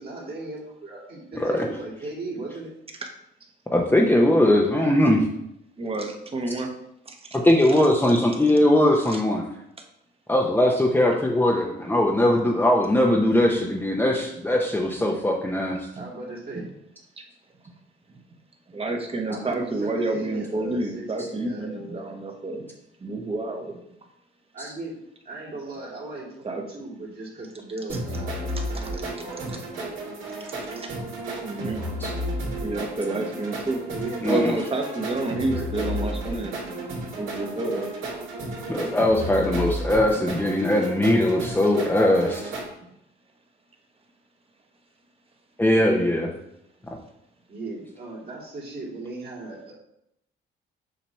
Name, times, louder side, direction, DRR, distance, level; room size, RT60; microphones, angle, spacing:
voice 1, 0.0-2.7 16.0-16.7 19.3-22.1 24.5-24.9 25.2-30.0 33.8-36.8 47.5-49.7, right 2 dB, 50° right, -5 dB, 2.5 m, -38 dB
voice 2, 1.4-1.7 3.7-5.2 7.3-9.4 10.3-15.9 32.0-32.1 34.2-34.5 38.7-42.5 45.6-46.3, left 1 dB, 10° left, -1 dB, 0.8 m, -20 dB
voice 3, 5.8-6.7 7.1-7.3 9.1-9.2 16.0-16.1 16.5-16.6 18.7-22.7 23.0-23.7 26.4-26.6 28.7-28.8 30.8-30.9 31.4-31.9 32.6-33.8 34.3-36.5 37.2-37.9, right 2 dB, 30° right, 3 dB, 1.2 m, -29 dB
sound 1, 27.9-42.7, right 1 dB, 80° right, 2.4 m, -33 dB
7.5 x 2.9 x 5.7 m, 0.79 s
cardioid pair, 90°, 20 cm